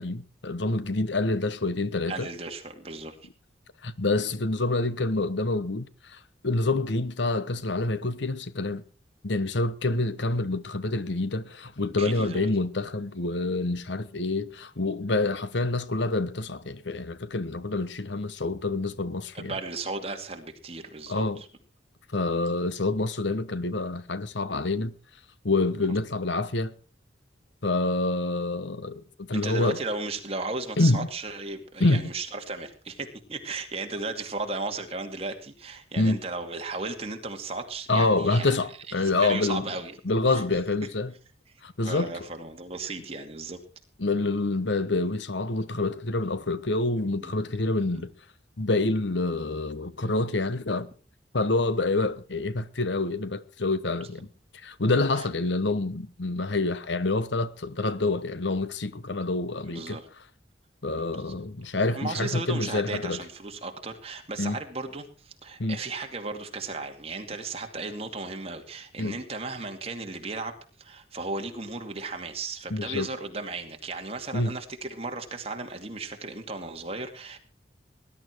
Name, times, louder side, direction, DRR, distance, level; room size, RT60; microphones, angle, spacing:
voice 1, 0.0-2.3 3.8-8.8 9.2-19.5 21.1-21.4 22.1-24.9 25.4-26.7 27.6-29.8 30.8-31.1 31.8-32.0 36.0-36.2 37.9-39.6 40.0-41.1 41.6-42.1 44.0-48.1 48.6-50.9 51.3-54.3 54.6-60.0 60.8-63.2 64.4-64.6 65.6-65.8 69.0-69.2 72.7-73.1 74.3-74.5, left 2 dB, 70° left, 1.1 m, -27 dB
voice 2, 2.1-3.2 12.0-12.5 19.5-21.5 29.3-38.6 39.0-39.9 40.3-40.6 41.8-43.6 47.2-47.4 47.9-48.0 55.1-55.3 59.6-60.1 61.0-61.5 61.9-77.4, right 3 dB, 30° right, 2.4 m, -35 dB
19.5 x 11.5 x 4.6 m
head